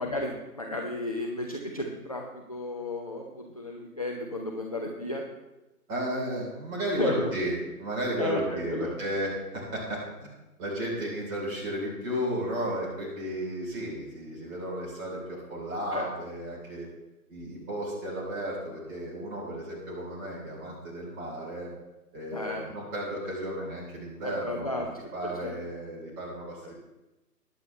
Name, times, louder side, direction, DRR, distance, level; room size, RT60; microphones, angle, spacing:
voice 1, 0.0-5.3 7.0-7.3 8.2-8.9 15.9-16.0 22.3-22.7 24.2-24.9 25.2-25.5 26.6-26.7, left 2 dB, 25° left, 1 dB, 0.6 m, -33 dB
voice 2, 5.9-10.3 10.6-16.9 17.3-21.7 22.1-24.8 25.1-26.7, right 1 dB, 15° right, -4 dB, 3.4 m, -34 dB
20.5 x 8.1 x 3.2 m, 1.0 s
figure-of-eight pair, 150°, 47 cm